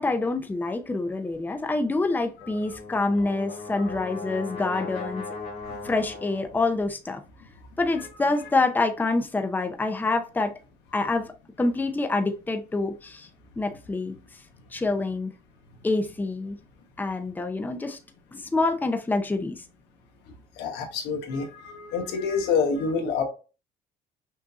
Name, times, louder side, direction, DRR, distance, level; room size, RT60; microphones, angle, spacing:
voice 1, 0.0-5.2 5.8-7.2 7.8-10.5 10.9-11.3 11.6-13.3 13.6-14.1 14.7-15.3 15.8-16.6 17.0-18.0 18.3-19.6, left 3 dB, 10° left, 0.6 m, -26 dB
Brass instrument, 2.4-6.7, left 3 dB, 60° left, 2.2 m, -38 dB
voice 2, 20.6-23.2, left 5 dB, 90° left, 1.2 m, -27 dB
6.1 x 2.7 x 2.5 m
cardioid pair, 110°, 17 cm